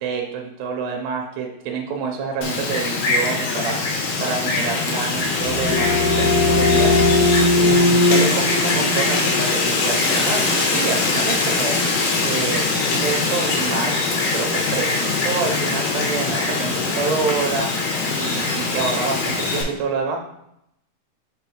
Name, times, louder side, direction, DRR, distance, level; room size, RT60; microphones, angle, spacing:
voice 1, 0.0-6.9 7.6-11.8 12.2-14.0 14.3-17.7 18.2-20.2, right 5 dB, 85° right, 1 dB, 2.9 m, -27 dB
Wind, 2.4-19.6, left 3 dB, 75° left, 2.9 m, -22 dB
sound 1, 5.1-10.7, left 2 dB, 90° left, 2.8 m, -20 dB
5.9 x 5.4 x 3.1 m, 0.79 s
omnidirectional pair, 4.8 m